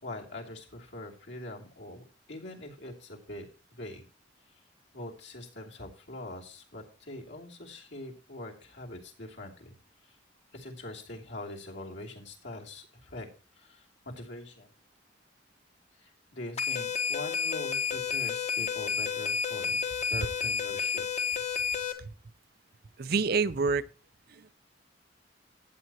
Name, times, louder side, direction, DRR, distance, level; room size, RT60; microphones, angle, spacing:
voice 1, 0.0-3.4 3.7-4.0 4.5-4.6 4.9-9.7 10.0-10.2 10.5-13.3 13.5-14.7 15.9-19.8 20.1-21.0, left 1 dB, 70° left, 2.8 m, -43 dB
sound 1, 16.6-21.9, left 6 dB, 35° left, 1.2 m, -31 dB
voice 2, 23.0-23.8 24.3-24.5, right 4 dB, 55° right, 0.6 m, -27 dB
14.0 x 8.8 x 2.9 m
head